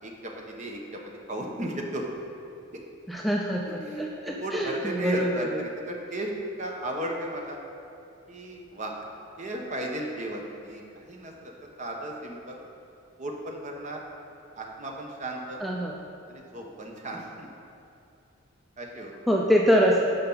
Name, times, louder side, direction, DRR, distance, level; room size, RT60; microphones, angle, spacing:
voice 1, 0.0-0.8 1.3-2.1 3.7-6.3 6.6-7.6 8.3-8.9 9.4-11.5 11.8-12.6 13.2-14.0 14.6-15.6 16.3-17.5 18.8-19.1, right 1 dB, 35° right, 0 dB, 1.0 m, -35 dB
voice 2, 3.1-5.6 15.6-15.9 19.3-20.1, equal, ahead, -2 dB, 0.5 m, -24 dB
11.5 x 5.6 x 3.9 m, 2.7 s
head